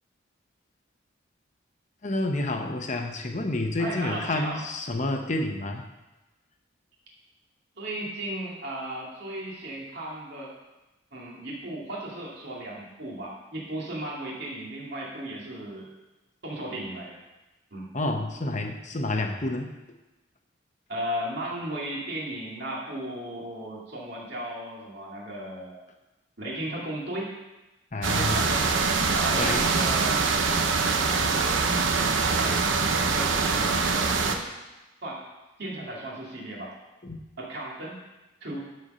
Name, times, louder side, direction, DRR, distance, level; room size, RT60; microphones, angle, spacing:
voice 1, 2.0-5.8 17.9-19.7 27.9-28.4 29.4-29.6 37.0-37.2, left 2 dB, 40° left, 4 dB, 0.9 m, -29 dB
voice 2, 3.8-4.6 7.8-10.5 11.1-15.9 16.4-17.2 17.7-17.9 20.9-25.8 26.4-27.4 28.1-31.8 32.2-34.5 35.0-35.2 35.6-36.7 37.4-38.0 38.4-38.7, right 1 dB, 60° right, -4 dB, 2.5 m, -36 dB
sound 1, 28.0-34.3, right 4 dB, 75° right, 0.8 m, -24 dB
11.5 x 4.5 x 5.5 m, 1.0 s
head